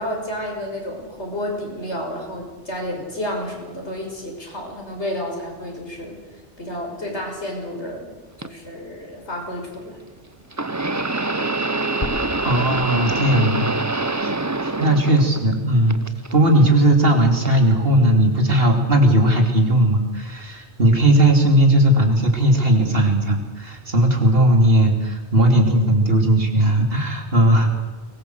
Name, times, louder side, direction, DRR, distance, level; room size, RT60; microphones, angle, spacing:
voice 1, 0.0-6.2 6.6-10.0, left 1 dB, 75° left, 1 dB, 6.3 m, -31 dB
sound 1, 8.4-8.5 10.5-15.6 15.9-16.7 17.4-17.6 18.6-18.7, right 2 dB, 15° right, 0.8 m, -25 dB
sound 2, 12.0-16.0, left 2 dB, 25° left, 1.3 m, -37 dB
voice 2, 12.4-13.7 14.2-14.3 14.6-16.0 16.3-27.7, right 1 dB, 55° right, 3 dB, 3.3 m, -17 dB
23.0 x 20.5 x 8.0 m, 1.3 s
omnidirectional pair, 1.2 m